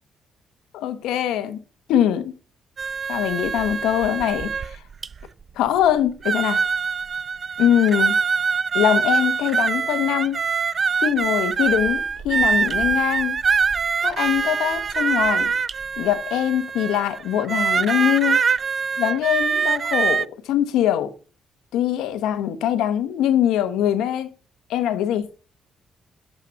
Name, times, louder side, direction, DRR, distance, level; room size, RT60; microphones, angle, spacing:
voice 1, 0.7-1.6 1.9-2.3 3.1-4.8 5.6-6.6 7.6-8.1 8.7-10.4 11.0-13.4 14.0-15.5 16.0-18.4 19.0-21.1 21.7-24.3 24.7-25.3, left 11 dB, 90° left, 1.2 m, -22 dB
sound 1, 2.8-5.3 5.8-5.9 6.2-20.2, right 5 dB, 40° right, 0.4 m, -23 dB
7.8 x 5.7 x 6.9 m
cardioid pair, 90°, 0 cm